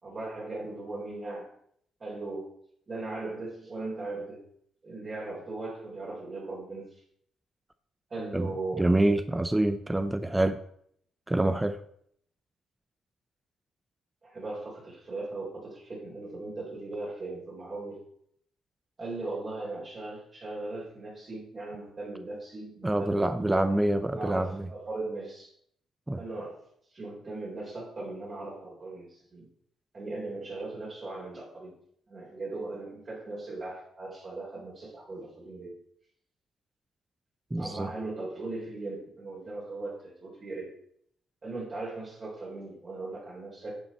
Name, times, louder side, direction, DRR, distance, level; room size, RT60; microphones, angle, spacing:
voice 1, 0.0-1.5 2.0-2.5 2.9-4.4 4.8-6.9 8.1-8.9 14.2-18.0 19.0-25.5 26.2-26.6 26.9-29.4 29.9-31.8 32.1-35.7 37.6-40.7 41.4-43.8, right 2 dB, 40° right, -6 dB, 3.7 m, -38 dB
voice 2, 8.8-10.6 11.3-11.8 22.8-24.7 26.1-26.2 37.5-37.9, right 1 dB, 10° right, 10 dB, 0.6 m, -26 dB
10.5 x 7.4 x 4.2 m, 0.67 s
cardioid pair, 90°, 0 cm